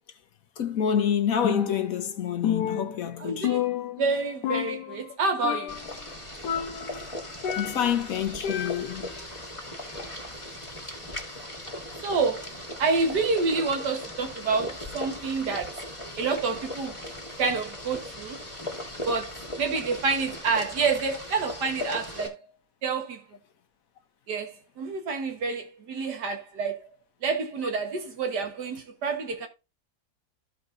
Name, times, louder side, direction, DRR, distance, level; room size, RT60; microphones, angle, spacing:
voice 1, 0.6-3.5 7.6-9.1 21.8-22.0, left 8 dB, 60° left, 1.3 m, -27 dB
Percussion, 1.4-2.1 2.4-4.2 4.4-5.1 5.4-5.9 6.4-8.0 8.4-9.1, left 10 dB, 85° left, 1.4 m, -30 dB
voice 2, 3.2-3.7 4.0-5.8 10.0-10.2 12.0-15.8 16.2-17.0 17.4-18.4 19.0-22.4 22.8-23.2 24.3-26.9 27.2-29.5, right 4 dB, 85° right, 2.1 m, -28 dB
Boiling, 5.7-22.3, left 1 dB, 20° left, 1.5 m, -38 dB
14.5 x 5.0 x 2.7 m
omnidirectional pair, 1.8 m